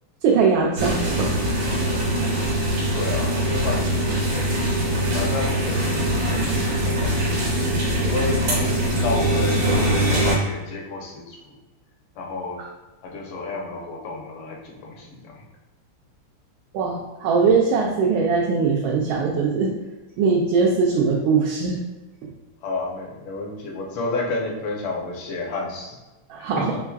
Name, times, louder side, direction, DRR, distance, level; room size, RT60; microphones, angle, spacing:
voice 1, 0.2-1.3 7.9-8.1 16.7-19.7 20.2-21.8 26.3-26.8, right 5 dB, 75° right, -2 dB, 1.3 m, -21 dB
sound 1, 0.8-10.3, right 1 dB, 60° right, 1.6 m, -22 dB
voice 2, 2.9-3.8 4.8-6.0 6.8-7.1 8.0-11.6 12.2-12.6 13.0-15.4 22.6-26.0 26.4-26.5, left 3 dB, 80° left, -2 dB, 1.8 m, -31 dB
4.5 x 3.5 x 2.3 m, 1.2 s
omnidirectional pair, 2.4 m